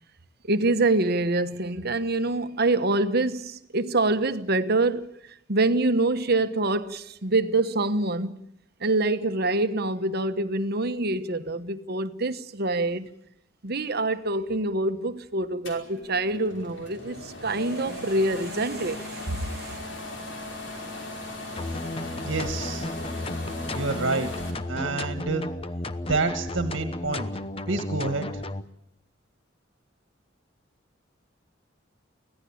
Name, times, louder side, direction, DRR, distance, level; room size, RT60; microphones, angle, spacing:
voice 1, 0.4-8.4 8.8-13.1 13.6-19.8, right 2 dB, 55° right, 1.2 m, -26 dB
sound 1, 15.6-24.5, left 2 dB, 65° left, 5.3 m, -38 dB
sound 2, 21.6-28.6, left 1 dB, 30° left, 1.0 m, -33 dB
voice 2, 22.2-22.9 23.7-24.3 24.7-25.5 26.1-27.3 27.7-28.4, right 3 dB, 70° right, 1.7 m, -28 dB
25.0 x 17.0 x 8.6 m
head